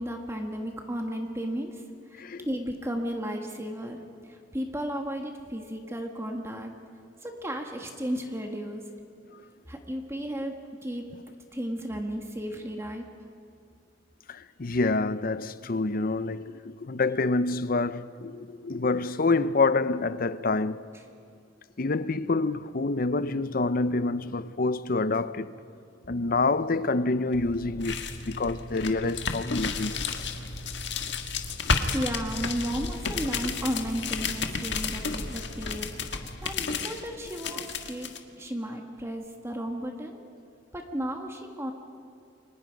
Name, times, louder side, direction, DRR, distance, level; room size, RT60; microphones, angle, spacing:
voice 1, 0.0-1.8 2.1-6.7 7.2-8.8 9.7-10.5 10.8-11.1 11.5-13.1 31.7-36.1 36.4-40.2 40.7-41.7, equal, 15° right, 1.7 m, -34 dB
voice 2, 14.3-20.8 21.8-25.5 26.1-30.2, left 3 dB, 50° left, 0.7 m, -27 dB
sound 1, 27.3-38.2, left 4 dB, 65° left, 1.7 m, -32 dB
30.0 x 24.5 x 5.3 m
head